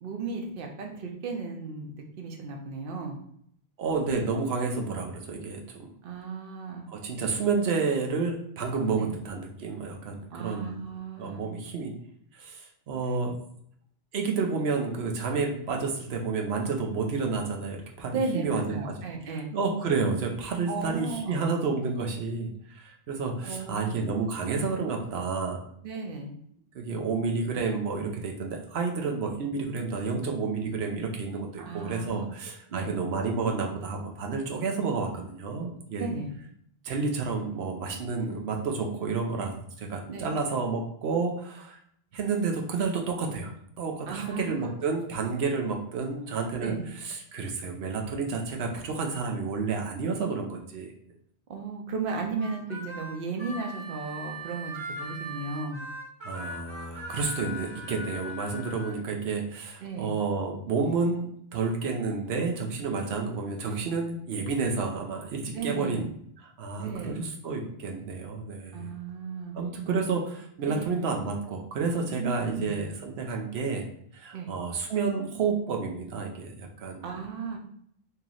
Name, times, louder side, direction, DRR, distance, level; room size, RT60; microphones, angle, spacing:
voice 1, 0.0-3.2 6.0-6.9 9.0-9.1 10.3-11.5 13.1-13.2 18.1-19.5 20.7-21.5 23.4-23.9 25.8-26.3 31.6-32.3 32.7-32.9 36.0-36.3 40.1-40.3 44.1-44.7 46.6-46.9 51.5-55.8 59.8-60.1 65.5-66.1 66.8-67.3 68.7-69.6 70.7-70.9 72.2-72.8 74.3-74.5 77.0-77.6, right 4 dB, 60° right, 2 dB, 0.9 m, -35 dB
voice 2, 3.8-5.9 6.9-10.8 11.2-11.9 12.4-13.3 14.1-18.9 19.5-25.6 26.7-36.1 36.8-41.8 42.1-43.5 43.8-46.8 47.0-50.9 56.2-66.1 66.4-68.9 69.5-73.8 74.1-77.1, right 4 dB, 90° right, 1 dB, 0.9 m, -30 dB
Harmonica, 52.4-58.9, equal, 30° right, 0.8 m, -40 dB
3.0 x 2.9 x 3.8 m, 0.68 s
omnidirectional pair, 1.1 m